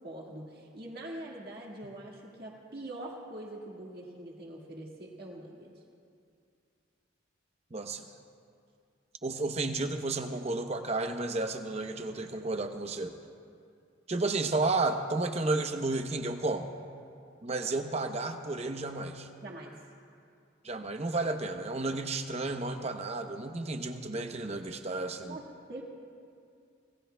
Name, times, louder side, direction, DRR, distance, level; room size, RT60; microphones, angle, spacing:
voice 1, 0.0-5.7 19.4-19.8 25.3-25.4 25.7-25.8, right 1 dB, 50° right, -2 dB, 1.8 m, -43 dB
voice 2, 7.7-8.1 9.2-13.1 14.1-16.7 17.4-19.3 20.6-25.4, right 2 dB, 35° right, 6 dB, 0.8 m, -32 dB
26.5 x 18.0 x 2.2 m, 2.4 s
head